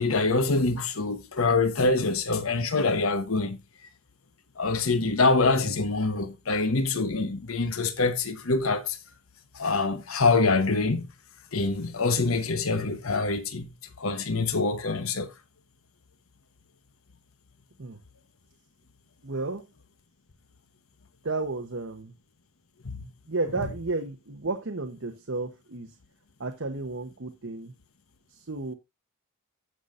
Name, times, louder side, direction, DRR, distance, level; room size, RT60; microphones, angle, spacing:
voice 1, 0.0-3.6 4.6-9.0 9.5-11.1 11.5-13.7 14.0-15.3 22.8-23.1, left 3 dB, 90° left, 1.1 m, -25 dB
voice 2, 19.2-19.6 21.2-22.1 23.3-25.9 26.4-27.7 28.3-28.7, right 3 dB, 65° right, 1.0 m, -32 dB
16.0 x 5.7 x 2.6 m
head